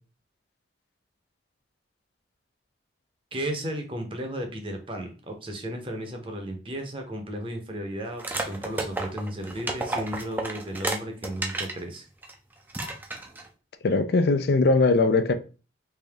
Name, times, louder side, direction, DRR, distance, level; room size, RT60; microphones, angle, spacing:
voice 1, 3.3-12.1, equal, 30° right, 0.8 m, -34 dB
sound 1, 8.2-11.8 12.2-12.3 12.7-13.5, right 2 dB, 10° right, 0.4 m, -31 dB
voice 2, 13.8-15.3, left 3 dB, 60° left, 0.4 m, -20 dB
3.4 x 2.6 x 3.4 m
head